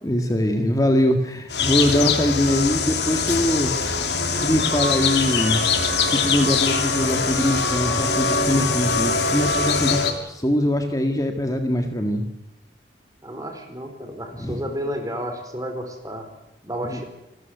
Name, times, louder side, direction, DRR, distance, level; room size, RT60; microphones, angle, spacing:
voice 1, 0.0-3.7 4.4-5.6 6.1-12.3 14.3-14.7 16.8-17.0, left 1 dB, 20° left, 5 dB, 1.8 m, -22 dB
sound 1, 1.5-10.1, left 4 dB, 70° left, 3.0 m, -22 dB
voice 2, 13.2-16.3 16.6-17.0, equal, 20° right, 5 dB, 4.5 m, -31 dB
28.0 x 14.0 x 9.4 m, 0.96 s
head